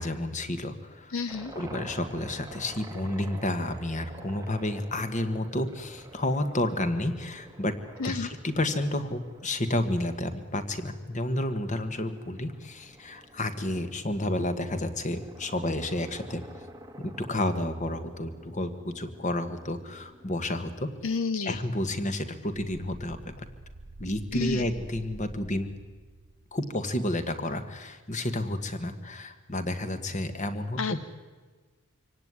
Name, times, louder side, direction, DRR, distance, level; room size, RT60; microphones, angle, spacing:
voice 1, 0.0-1.1 1.5-7.8 8.0-16.4 17.0-20.9 21.4-23.3 24.0-25.7 26.5-31.0, left 1 dB, 35° left, 10 dB, 1.6 m, -31 dB
voice 2, 1.1-1.5 8.0-8.3 21.0-21.6 24.3-24.7 30.8-31.1, left 4 dB, 60° left, 13 dB, 0.6 m, -30 dB
sound 1, 1.3-21.0, right 1 dB, 15° right, 1.1 m, -49 dB
sound 2, 22.5-27.2, right 2 dB, 70° right, 1.1 m, -47 dB
25.0 x 17.5 x 9.8 m, 1.4 s
head